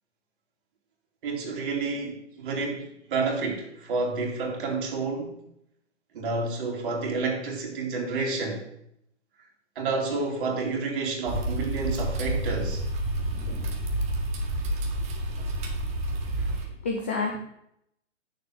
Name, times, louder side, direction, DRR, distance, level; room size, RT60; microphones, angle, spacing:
voice 1, 1.2-5.4 6.1-8.7 9.7-12.8 16.4-16.5, right 3 dB, 45° right, 3.0 m, -30 dB
sound 1, 11.3-16.7, right 1 dB, 20° right, 1.3 m, -29 dB
voice 2, 16.5-17.4, left 3 dB, 10° left, 0.4 m, -30 dB
8.8 x 6.8 x 6.5 m
hypercardioid pair, 140°, 37 cm